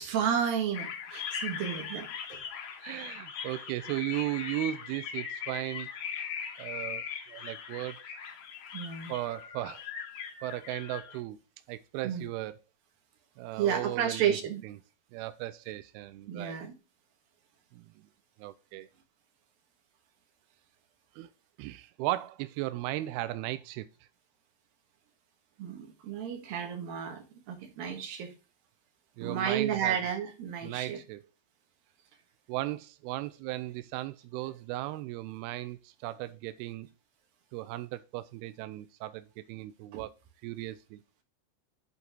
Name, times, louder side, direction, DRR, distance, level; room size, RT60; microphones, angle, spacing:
voice 1, 0.0-2.4 8.7-9.1 12.0-12.3 13.6-14.6 16.3-16.7 25.6-28.3 29.2-31.0 39.9-40.0, right 8 dB, 65° right, 3.0 m, -32 dB
sound 1, 0.7-11.2, left 7 dB, 70° left, 1.7 m, -40 dB
voice 2, 2.8-5.9 6.6-8.0 9.1-9.9 10.4-11.4 11.7-12.6 13.4-14.4 14.6-14.7 15.1-16.6 17.7-17.9 18.4-18.9 21.2-21.3 21.6-23.9 29.2-30.0 30.6-31.2 32.5-36.9 37.5-40.1 40.4-41.0, right 16 dB, 85° right, 2.2 m, -36 dB
8.2 x 4.2 x 5.9 m
omnidirectional pair, 4.9 m